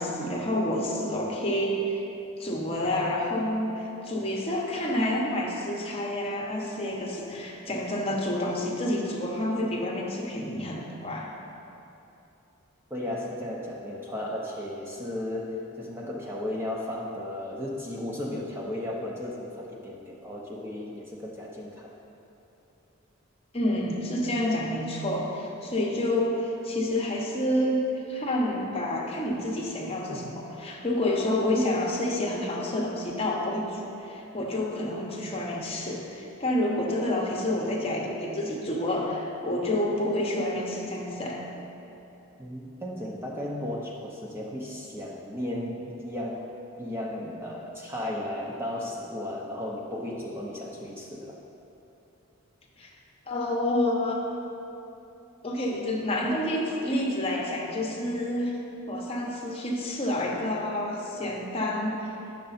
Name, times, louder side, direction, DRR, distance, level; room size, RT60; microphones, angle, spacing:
voice 1, 0.0-2.0 2.4-11.3 23.5-27.8 28.1-41.4 52.8-52.9 53.3-54.2 55.4-58.6 58.9-62.0, left 1 dB, 25° left, -2 dB, 0.9 m, -28 dB
voice 2, 12.9-21.9 42.4-46.5 46.8-51.4, left 1 dB, 10° right, -3 dB, 0.6 m, -35 dB
9.9 x 6.6 x 4.2 m, 2.9 s
head